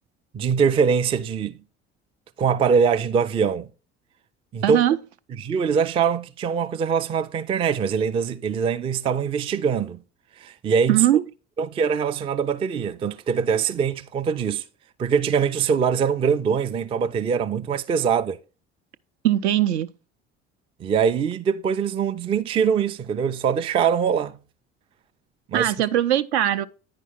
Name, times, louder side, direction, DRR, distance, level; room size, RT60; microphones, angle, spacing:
voice 1, 0.3-1.6 2.4-3.7 4.5-4.8 5.4-10.0 10.4-11.0 11.6-14.6 15.0-18.4 20.8-24.4 25.5-25.7, right 6 dB, 15° right, 0.3 m, -23 dB
voice 2, 4.6-5.0 10.9-11.2 19.2-19.9 25.5-26.7, right 12 dB, 65° right, 0.5 m, -20 dB
9.5 x 5.3 x 3.5 m
figure-of-eight pair, 60°, 35 cm